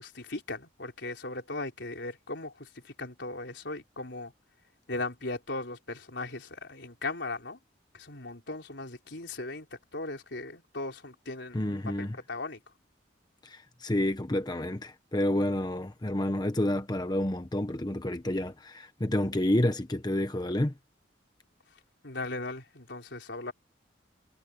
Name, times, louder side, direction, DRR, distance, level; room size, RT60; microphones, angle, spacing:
voice 1, 0.0-4.3 4.9-7.6 7.9-9.7 9.9-11.8 12.3-12.6 22.0-23.5, left 2 dB, 70° left, 4.4 m, -38 dB
voice 2, 11.5-12.2 13.4-20.7, left 1 dB, 20° left, 0.9 m, -29 dB
head